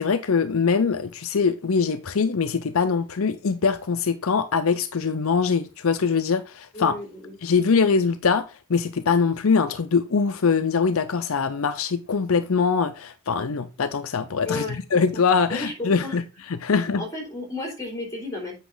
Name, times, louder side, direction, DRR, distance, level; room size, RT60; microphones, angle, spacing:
voice 1, 0.0-7.0 7.4-16.2 16.5-17.0, left 5 dB, 70° left, 0.6 m, -23 dB
voice 2, 6.7-7.4 14.4-14.8 15.1-15.2 15.5-16.2 16.7-18.6, left 2 dB, 15° left, 3.7 m, -33 dB
8.2 x 5.9 x 3.9 m
head